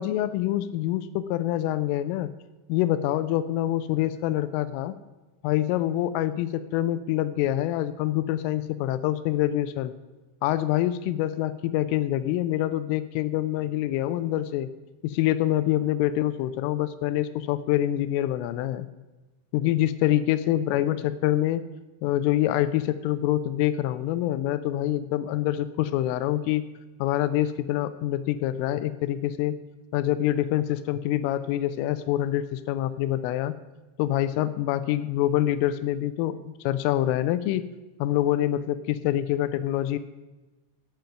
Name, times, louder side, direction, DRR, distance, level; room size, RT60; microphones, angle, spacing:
voice 1, 0.0-2.3 2.7-4.9 5.4-9.9 10.4-14.7 15.0-18.9 19.5-21.6 22.0-26.6 27.0-29.5 29.9-33.5 34.0-36.4 36.6-37.7 38.0-40.0, left 13 dB, 85° left, 13 dB, 3.1 m, -26 dB
14.5 x 9.1 x 5.8 m, 1.1 s
omnidirectional pair, 5.8 m